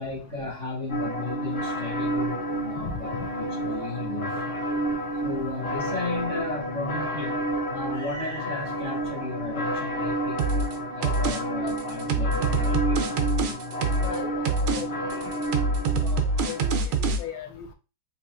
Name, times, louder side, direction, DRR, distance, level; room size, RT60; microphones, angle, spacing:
voice 1, 0.0-4.4 5.2-10.4 10.8-13.1, left 3 dB, 5° left, 1.7 m, -35 dB
sound 1, 0.9-16.8, right 1 dB, 65° left, 0.6 m, -30 dB
voice 2, 2.8-3.3 14.0-14.9 15.1-15.5 15.8-16.2 16.4-17.7, left 7 dB, 90° left, 1.5 m, -37 dB
sound 2, 10.4-10.7 11.0-11.4 11.7-14.2 14.5-14.8 15.1-17.2, right 3 dB, 85° right, 1.5 m, -25 dB
4.2 x 3.0 x 2.4 m
omnidirectional pair, 2.2 m